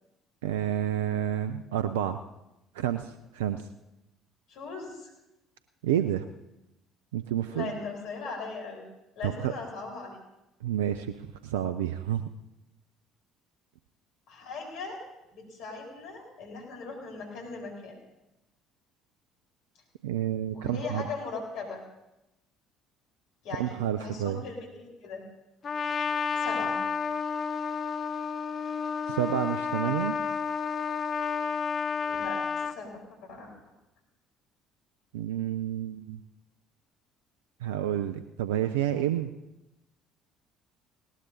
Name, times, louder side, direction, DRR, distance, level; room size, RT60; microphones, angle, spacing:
voice 1, 0.4-2.2 2.7-3.7 5.8-6.2 7.1-7.7 9.2-9.5 10.6-12.2 20.0-21.0 23.6-24.4 29.1-30.2 35.1-36.2 37.6-39.3, right 11 dB, 80° right, 10 dB, 0.4 m, -29 dB
voice 2, 4.5-5.1 7.5-8.8 9.2-10.2 14.3-15.0 15.3-17.9 20.5-21.8 23.4-25.2 26.4-26.8 32.1-32.9 33.2-33.5, left 4 dB, 65° left, 0 dB, 4.3 m, -39 dB
Trumpet, 25.6-32.8, left 6 dB, 40° left, 0.6 m, -31 dB
19.0 x 18.0 x 2.7 m, 0.92 s
hypercardioid pair, 55°, 0 cm